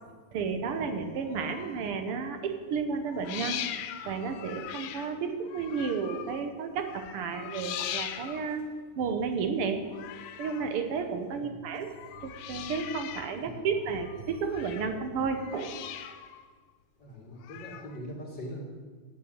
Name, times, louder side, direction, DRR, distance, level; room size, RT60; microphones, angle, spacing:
voice 1, 0.3-3.6 4.0-8.6 9.0-9.9 10.4-15.8, right 5 dB, 65° right, 7 dB, 1.5 m, -32 dB
sound 1, 1.2-2.0 3.0-6.5 6.8-8.6 9.9-10.8 11.8-13.4 13.7-15.0 15.3-16.5 17.4-18.0, left 10 dB, 90° left, 2.1 m, -41 dB
voice 2, 17.0-18.6, equal, 40° left, -3 dB, 2.6 m, -42 dB
9.2 x 7.8 x 8.8 m, 1.5 s
omnidirectional pair, 3.4 m